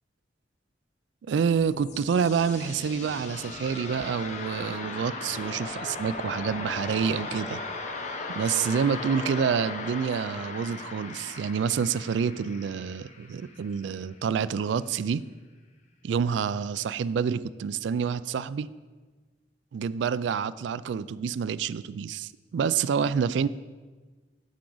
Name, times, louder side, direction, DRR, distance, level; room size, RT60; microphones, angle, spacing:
voice 1, 1.3-7.6 8.3-15.2 16.0-18.7 19.7-23.5, right 6 dB, 70° right, 17 dB, 0.3 m, -28 dB
sound 1, 1.5-14.2, left 3 dB, 40° left, 0.8 m, -38 dB
11.5 x 7.2 x 3.9 m, 1.3 s
head